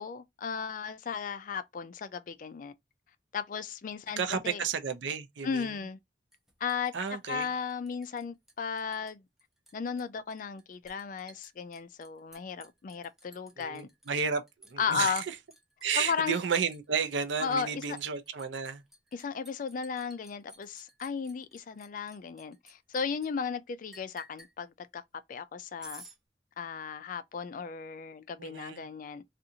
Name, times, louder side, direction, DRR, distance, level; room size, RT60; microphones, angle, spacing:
voice 1, 0.0-2.7 3.3-4.6 5.4-6.0 6.6-6.9 7.3-9.2 9.7-13.9 14.8-15.2 16.0-16.4 17.4-18.0 19.1-25.0 25.3-26.0 26.6-29.2, left 6 dB, 45° left, 0.3 m, -35 dB
voice 2, 4.2-5.7 6.9-7.5 13.6-14.4 14.7-15.2 15.8-18.8 28.4-28.9, right 6 dB, 85° right, 0.5 m, -32 dB
Liquid, 6.3-8.2 8.5-9.1 9.4-23.3 23.9-24.5 25.8-26.2, right 1 dB, ahead, 0.7 m, -54 dB
2.5 x 2.4 x 2.6 m
head